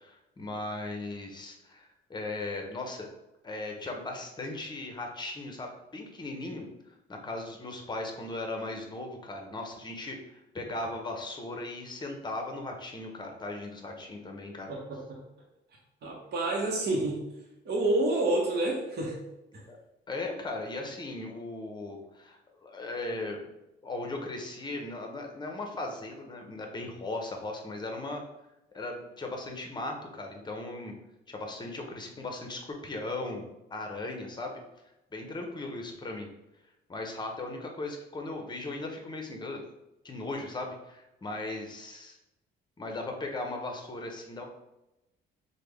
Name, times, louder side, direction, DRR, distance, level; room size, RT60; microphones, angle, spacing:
voice 1, 0.0-3.1 3.4-6.7 7.1-14.7 19.5-19.8 20.1-23.4 23.8-28.2 28.7-30.9 31.3-34.6 35.1-36.3 36.9-39.6 40.0-42.2 42.8-44.4, left 2 dB, 20° left, 2 dB, 0.7 m, -37 dB
voice 2, 14.7-15.2 16.0-17.2 17.6-19.2, right 2 dB, 55° right, -2 dB, 0.9 m, -28 dB
3.3 x 2.1 x 3.3 m, 0.90 s
cardioid pair, 90°, 20 cm